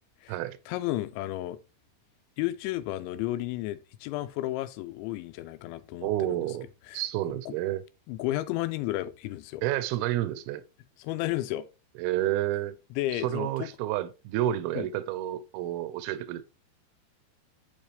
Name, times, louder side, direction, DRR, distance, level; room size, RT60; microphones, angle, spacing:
voice 1, 0.7-1.6 2.4-6.5 6.9-7.0 7.5-7.6 8.1-9.6 11.0-11.7 13.0-13.7 14.8-14.9, left 16 dB, 90° left, 3.0 m, -32 dB
voice 2, 6.0-6.7 6.9-7.8 9.6-10.6 12.0-12.7 13.1-16.4, right 13 dB, 80° right, 2.3 m, -30 dB
8.0 x 4.9 x 3.4 m
omnidirectional pair, 5.2 m